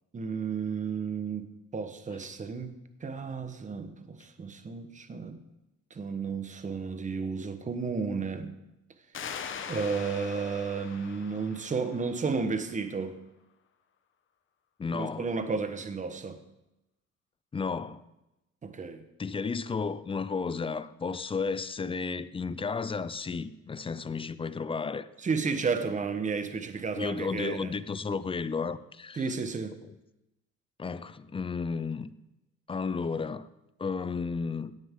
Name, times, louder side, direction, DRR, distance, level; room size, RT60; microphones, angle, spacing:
voice 1, 0.1-2.7 3.0-5.4 5.9-8.5 9.7-13.2 14.9-16.4 18.6-19.0 25.2-27.7 29.2-29.8, right 5 dB, 25° right, 1.2 m, -32 dB
sound 1, 9.1-12.5, left 7 dB, 40° left, 1.1 m, -42 dB
voice 2, 14.8-15.3 17.5-18.0 19.2-25.1 26.9-29.3 29.8-30.0 30.8-32.1 32.7-33.5 33.8-34.7, left 5 dB, 20° left, 0.5 m, -33 dB
17.0 x 9.5 x 3.8 m
cardioid pair, 110°, 31 cm